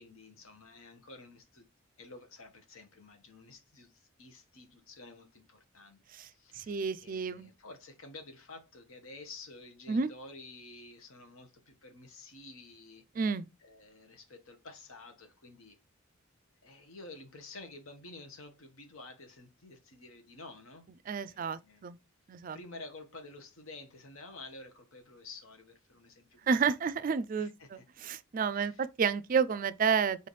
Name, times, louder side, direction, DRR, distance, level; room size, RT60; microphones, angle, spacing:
voice 1, 0.0-1.6 2.0-6.0 6.3-13.0 13.6-15.8 16.6-20.8 21.2-21.8 22.5-26.9 27.2-27.9 28.5-28.9, left 3 dB, 80° left, 1.1 m, -51 dB
voice 2, 6.6-7.5 9.9-10.1 13.2-13.5 21.1-22.0 22.3-22.6 26.5-30.3, right 6 dB, 40° right, 0.3 m, -30 dB
4.0 x 3.3 x 4.0 m
head